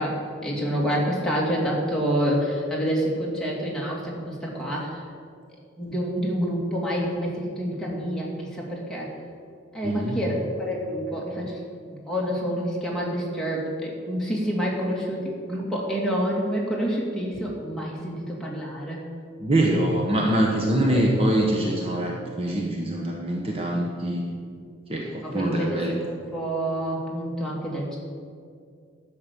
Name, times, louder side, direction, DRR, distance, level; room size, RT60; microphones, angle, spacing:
voice 1, 0.0-5.0 5.8-9.1 9.7-11.6 11.9-19.0 20.9-21.0 24.5-24.6 25.2-28.0, equal, 5° left, -5 dB, 2.4 m, -28 dB
voice 2, 9.8-10.2 19.4-24.3 24.9-25.9, right 1 dB, 30° right, -1 dB, 1.1 m, -24 dB
11.5 x 6.4 x 8.3 m, 2.2 s
head